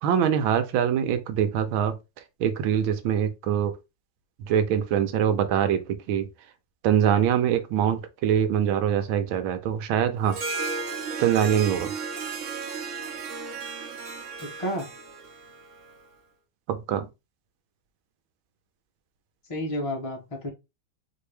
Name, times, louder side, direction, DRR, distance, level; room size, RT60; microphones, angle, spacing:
voice 1, 0.0-2.0 2.4-3.7 4.4-6.3 6.8-10.4 11.2-11.9 16.7-17.1, right 9 dB, 85° right, 1.5 m, -24 dB
Harp, 10.2-16.0, right 4 dB, 60° right, 0.8 m, -34 dB
voice 2, 14.4-14.9 19.5-20.5, equal, 60° left, 0.3 m, -31 dB
4.4 x 2.8 x 3.3 m
omnidirectional pair, 2.2 m